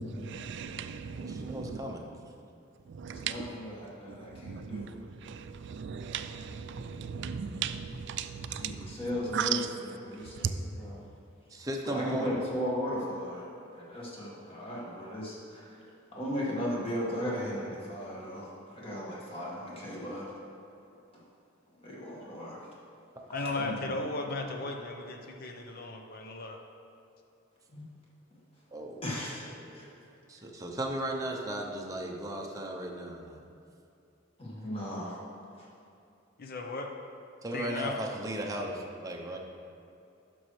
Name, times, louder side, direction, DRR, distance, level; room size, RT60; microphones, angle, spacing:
voice 1, 0.3-1.6 3.0-3.3 4.5-4.9 5.3-5.4 5.7-8.7 9.3-9.5, right 7 dB, 60° right, 0.4 m, -36 dB
voice 2, 1.1-2.0 6.7-7.0 11.5-12.4 28.7-29.0 29.7-29.8 30.3-33.4 37.4-39.4, right 1 dB, 15° right, 0.6 m, -36 dB
voice 3, 3.1-4.9 8.5-11.0 11.8-15.9 16.1-20.4 21.1-21.2 21.8-22.7 23.5-23.9 27.7-27.8 29.0-29.9 34.4-35.2 35.6-35.7, equal, 30° left, 1.7 m, -37 dB
voice 4, 23.3-26.6 36.4-36.9 37.5-38.0, left 2 dB, 50° left, 0.7 m, -36 dB
11.0 x 6.2 x 3.2 m
head